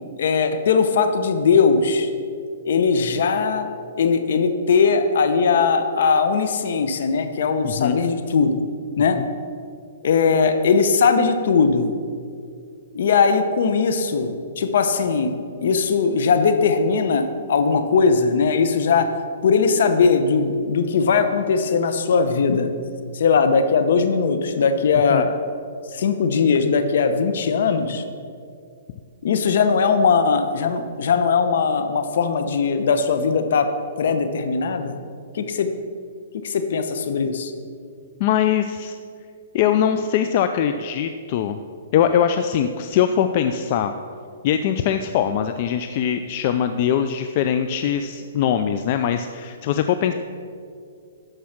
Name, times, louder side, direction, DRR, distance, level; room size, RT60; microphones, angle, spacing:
voice 1, 0.2-2.1 2.6-3.7 4.0-8.6 9.0-9.2 10.0-11.9 12.9-19.1 19.4-22.7 23.1-25.3 25.9-28.0 29.2-33.7 34.0-35.0 35.3-35.7 36.3-37.5, left 5 dB, 65° left, 9 dB, 0.9 m, -19 dB
voice 2, 7.6-8.0 9.2-9.3 25.1-25.2 38.2-39.0 39.5-41.6 41.9-43.9 44.4-50.1, left 9 dB, 45° left, 8 dB, 0.4 m, -21 dB
12.0 x 4.8 x 5.9 m, 2.3 s
hypercardioid pair, 145°, 0 cm